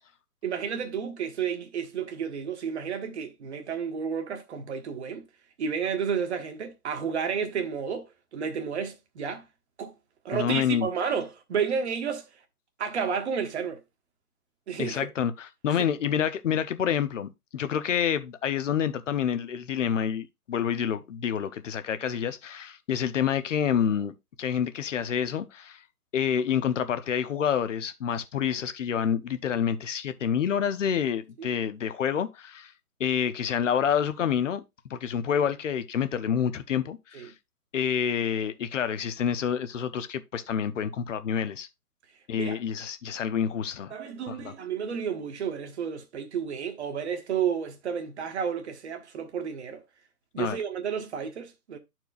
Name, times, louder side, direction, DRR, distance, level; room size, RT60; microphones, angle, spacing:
voice 1, 0.4-5.3 5.6-9.5 9.8-9.9 10.2-12.3 12.8-13.8 14.7-15.1 31.4-31.6 37.1-37.3 42.4-42.6 43.9-49.8 50.3-51.8, right 7 dB, 45° right, 1.3 m, -31 dB
voice 2, 10.3-10.9 14.8-25.8 26.1-32.7 33.0-37.3 37.7-41.7 42.3-43.9 44.3-44.5 50.4-50.6, left 8 dB, 50° left, 0.8 m, -28 dB
11.5 x 4.5 x 2.4 m
hypercardioid pair, 155°, 46 cm